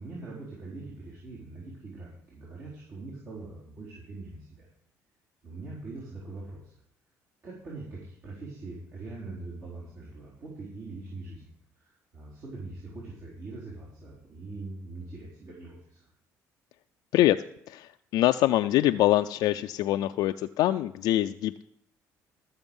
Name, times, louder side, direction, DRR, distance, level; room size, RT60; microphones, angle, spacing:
voice 1, 0.0-4.7 5.4-6.7 7.4-11.5 11.8-16.1, right 3 dB, 60° right, -7 dB, 4.1 m, -42 dB
voice 2, 17.1-21.6, left 14 dB, 75° left, 8 dB, 0.4 m, -24 dB
13.5 x 7.1 x 5.3 m, 0.72 s
supercardioid pair, 85°, 7 cm